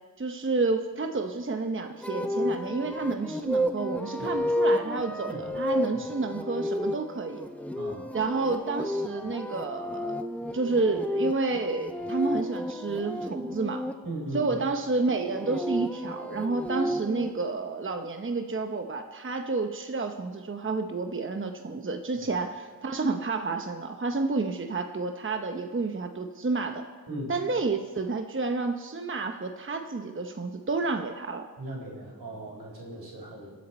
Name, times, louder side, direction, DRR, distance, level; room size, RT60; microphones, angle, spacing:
voice 1, 0.2-7.5 8.1-10.2 10.5-13.8 14.3-26.8 27.3-31.4, right 3 dB, 35° right, 5 dB, 0.9 m, -30 dB
sound 1, 2.0-13.9 15.1-17.3, left 1 dB, 5° left, 0.8 m, -31 dB
voice 2, 7.8-8.1 14.0-14.6 22.2-22.3 27.1-27.3 31.6-33.5, right 1 dB, 80° right, -2 dB, 4.2 m, -38 dB
25.0 x 8.6 x 4.3 m, 1.5 s
cardioid pair, 65°, 37 cm